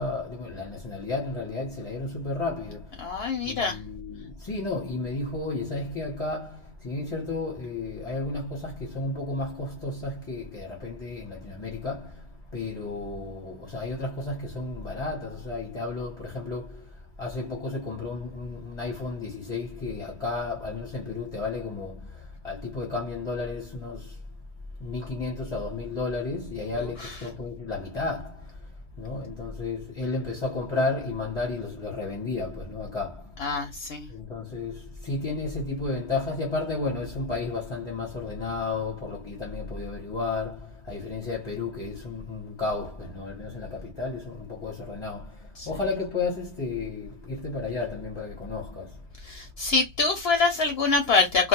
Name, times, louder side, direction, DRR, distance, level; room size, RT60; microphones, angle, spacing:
voice 1, 0.0-3.1 3.4-24.2 24.8-28.7 29.0-33.4 34.1-49.0, left 3 dB, 30° left, 0.7 m, -32 dB
voice 2, 3.0-3.8 27.0-27.1 33.4-34.1 45.6-45.7 49.2-51.5, left 4 dB, 65° left, 0.7 m, -25 dB
2.3 x 2.2 x 2.8 m
omnidirectional pair, 1.2 m